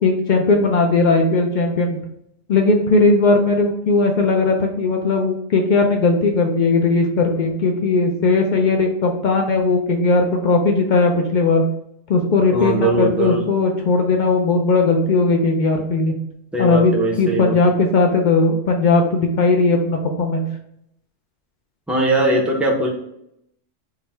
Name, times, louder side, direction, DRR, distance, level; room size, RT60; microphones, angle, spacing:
voice 1, 0.0-2.0 2.5-11.6 12.1-16.1 16.6-20.4, left 3 dB, 65° left, 2 dB, 0.4 m, -17 dB
voice 2, 12.5-13.4 16.5-17.6 21.9-22.9, right 2 dB, ahead, -2 dB, 0.4 m, -20 dB
3.7 x 2.1 x 4.2 m, 0.76 s
omnidirectional pair, 1.3 m